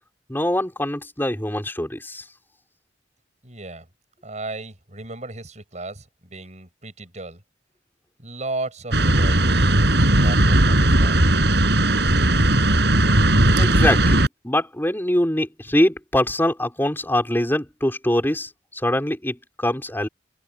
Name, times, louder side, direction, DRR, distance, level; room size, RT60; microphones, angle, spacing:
voice 1, 0.3-2.2 13.6-20.1, left 1 dB, 10° left, 4.8 m, -23 dB
voice 2, 3.4-3.9 4.2-7.4 8.2-11.4, right 2 dB, 40° right, 7.8 m, -35 dB
sound 1, 8.9-14.3, right 1 dB, 70° right, 5.5 m, -17 dB
open air
head